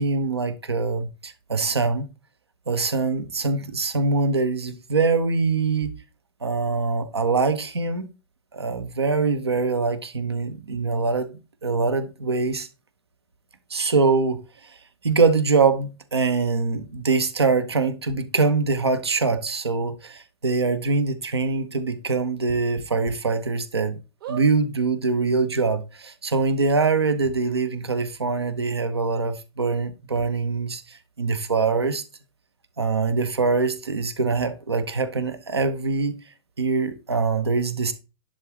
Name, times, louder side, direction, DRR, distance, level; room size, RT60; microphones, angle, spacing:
voice 1, 0.0-2.1 2.7-5.9 6.4-8.1 8.5-12.7 13.7-14.7 15.0-24.0 24.3-32.0 32.8-36.1 36.6-37.9, right 4 dB, 85° right, 0.9 m, -23 dB
sound 1, 18.1-18.2 18.7-18.8 19.7-19.8 20.2-20.3 20.7-20.8 22.4-23.1 23.6-23.7 24.2-24.5 25.3-25.4 25.6-25.7, right 7 dB, 60° right, 1.3 m, -37 dB
10.5 x 3.8 x 2.9 m
figure-of-eight pair, 100°, 13 cm